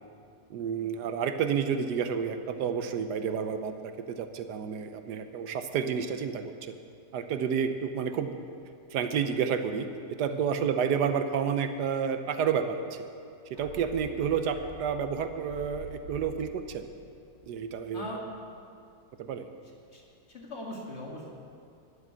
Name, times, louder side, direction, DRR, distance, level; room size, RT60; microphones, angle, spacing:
voice 1, 0.5-6.7 7.1-8.3 8.9-13.1 13.6-16.8 17.5-18.2 19.2-19.5, right 7 dB, 75° right, 9 dB, 1.3 m, -30 dB
voice 2, 10.2-10.6 17.9-18.3 19.6-20.0 20.3-21.3, left 1 dB, 40° left, -2 dB, 2.2 m, -41 dB
sound 1, 13.5-18.2 18.4-18.5, left 1 dB, 85° left, 1.8 m, -48 dB
12.0 x 7.2 x 9.9 m, 2.3 s
omnidirectional pair, 1.8 m